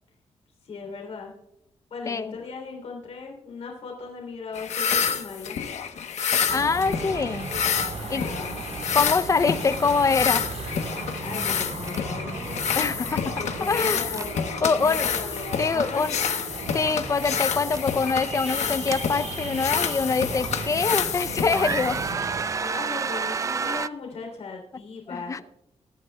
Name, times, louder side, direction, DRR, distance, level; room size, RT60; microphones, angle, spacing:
voice 1, 0.6-1.3 1.9-5.6 8.0-8.6 11.2-12.6 13.4-16.1 22.6-25.4, left 4 dB, 65° left, 0 dB, 3.1 m, -37 dB
sound 1, 4.5-22.1, left 7 dB, 85° left, 1.0 m, -29 dB
voice 2, 6.5-7.5 8.1-8.2 8.9-10.5 12.8-13.3 13.6-14.0 14.6-15.1 15.6-16.2 16.7-22.0 25.1-25.4, left 4 dB, 30° left, 14 dB, 0.5 m, -24 dB
sound 2, 6.5-22.5, right 3 dB, 75° right, 4.2 m, -36 dB
sound 3, 11.9-12.0 12.3-12.5 14.1-14.3 14.8-15.2 16.7-17.0 17.2-17.8 18.6-19.6 20.2-20.3 20.9-21.2 21.5-23.9, right 5 dB, 30° right, 0.3 m, -30 dB
22.5 x 13.0 x 2.3 m, 0.84 s
wide cardioid pair, 155°, 11 cm